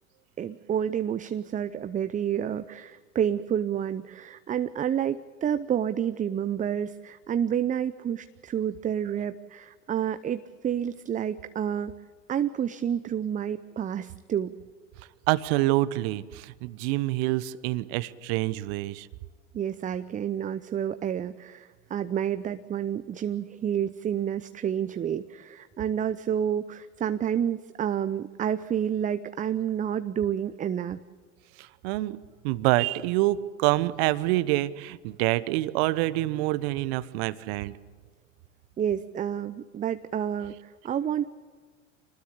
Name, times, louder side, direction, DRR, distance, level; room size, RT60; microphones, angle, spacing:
voice 1, 0.4-11.9 12.3-14.6 19.5-31.0 38.8-41.3, right 9 dB, 20° right, 12 dB, 0.7 m, -29 dB
voice 2, 15.3-19.1 31.8-32.2 32.4-37.7, right 18 dB, 50° right, 17 dB, 1.1 m, -26 dB
26.5 x 20.0 x 8.4 m, 1.5 s
figure-of-eight pair, 85°, 39 cm